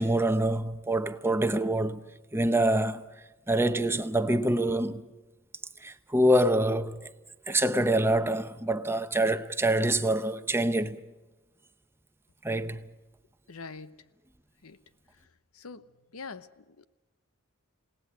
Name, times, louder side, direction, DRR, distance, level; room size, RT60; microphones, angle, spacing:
voice 1, 0.0-2.0 2.3-3.0 3.5-5.0 5.8-7.0 7.5-11.0 12.4-12.9, right 1 dB, 10° right, 0.8 m, -25 dB
voice 2, 13.5-14.0 14.6-14.8 15.5-15.8 16.1-16.8, left 4 dB, 85° left, 0.9 m, -43 dB
29.5 x 18.0 x 6.3 m
head